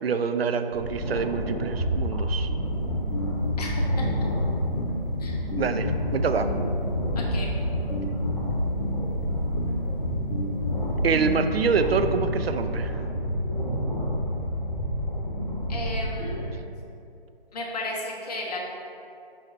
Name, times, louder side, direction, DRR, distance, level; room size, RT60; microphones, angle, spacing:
voice 1, 0.0-2.5 5.5-6.5 11.0-13.0, right 5 dB, 85° right, 9 dB, 0.5 m, -26 dB
sound 1, 0.7-16.4, equal, 5° left, 0.8 m, -29 dB
sound 2, 2.7-12.1, left 2 dB, 70° left, 1.0 m, -31 dB
voice 2, 3.6-4.1 5.2-5.4 7.1-7.5 15.7-16.7 17.5-18.6, left 2 dB, 45° left, -2 dB, 1.1 m, -34 dB
5.6 x 4.2 x 4.5 m, 2.6 s
hypercardioid pair, 160°, 29 cm